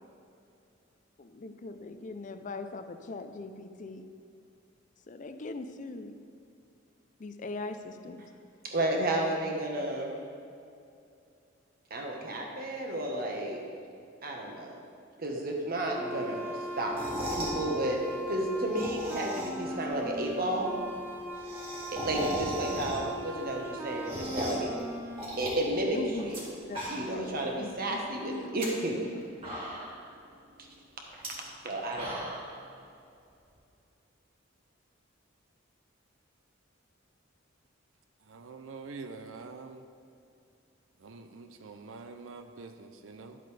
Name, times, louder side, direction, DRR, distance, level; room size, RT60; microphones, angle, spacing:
voice 1, 1.2-4.0 5.1-6.1 7.2-8.2 25.9-26.3 26.6-28.6 29.1-29.3, left 3 dB, 40° left, 9 dB, 0.4 m, -40 dB
voice 2, 8.6-10.1 11.9-13.6 14.2-14.8 15.2-16.9 17.3-18.0 18.3-20.7 21.9-24.7 25.4-26.0 26.3-26.4 26.9-29.0 31.6-32.3, right 1 dB, 50° right, 0 dB, 1.3 m, -32 dB
sound 1, 15.9-25.2, right 1 dB, 10° right, 0.6 m, -39 dB
sound 2, 16.8-17.6 18.6-19.7 20.0-20.1 20.4-20.5 20.7-20.8 21.0-23.2 23.6-24.7 25.2-26.4 26.7-27.3 27.6-27.7 28.4-28.7 29.1-29.2 29.4-30.0 31.1-31.3 31.7-32.5, equal, 30° right, 2.1 m, -36 dB
voice 3, 38.3-39.8 41.0-43.4, right 4 dB, 80° right, 7 dB, 0.5 m, -45 dB
11.0 x 7.8 x 3.3 m, 2.5 s
head